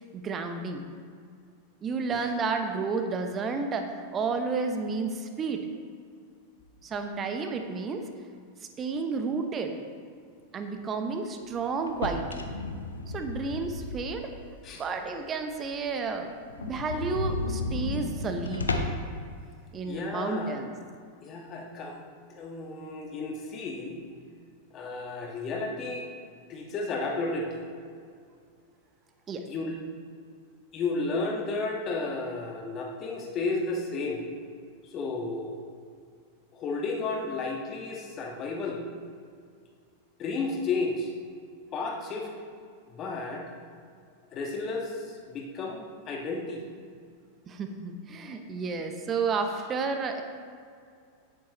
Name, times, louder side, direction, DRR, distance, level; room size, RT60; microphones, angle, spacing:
voice 1, 0.1-0.9 1.8-5.7 6.8-8.1 8.6-9.8 10.5-12.5 13.1-14.3 14.7-18.7 19.7-20.7 29.3-29.5 47.5-50.2, right 4 dB, 25° right, 6 dB, 0.8 m, -31 dB
sound 1, 11.9-14.4 14.8-14.9 15.4-15.5 15.7-15.8 16.1-16.2 16.5-19.1, left 3 dB, 75° left, 0.7 m, -33 dB
voice 2, 19.8-20.6 21.2-22.0 22.3-24.0 24.7-26.1 26.5-27.6 29.5-29.8 30.7-34.3 34.8-35.6 36.5-38.8 40.2-41.1 41.7-42.3 42.9-43.4 44.3-46.6, left 3 dB, 30° left, 1 dB, 1.5 m, -32 dB
9.6 x 9.1 x 3.0 m, 2.2 s
figure-of-eight pair, 90°, 0 cm